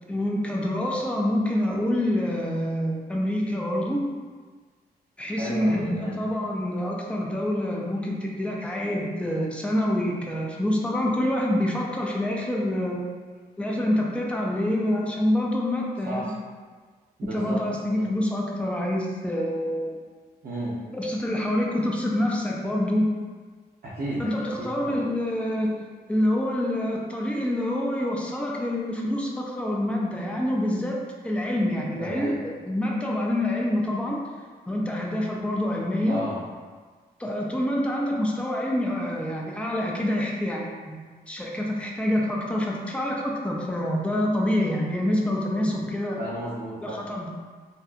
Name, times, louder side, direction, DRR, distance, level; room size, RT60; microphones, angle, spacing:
voice 1, 0.1-4.0 5.2-13.0 13.6-16.3 17.3-20.0 20.9-23.1 24.2-25.8 26.1-32.3 32.6-34.2 34.7-36.2 37.2-41.0 41.3-46.2 46.8-47.3, left 1 dB, 5° left, -2 dB, 0.4 m, -26 dB
voice 2, 5.4-6.2 16.1-16.3 17.2-17.6 17.9-18.1 20.4-20.7 23.8-24.3 24.6-24.9 31.9-32.4 36.1-36.4 45.6-45.8 46.2-47.1, right 1 dB, 65° right, -9 dB, 0.6 m, -33 dB
2.7 x 2.2 x 2.4 m, 1.5 s
cardioid pair, 75°, 17 cm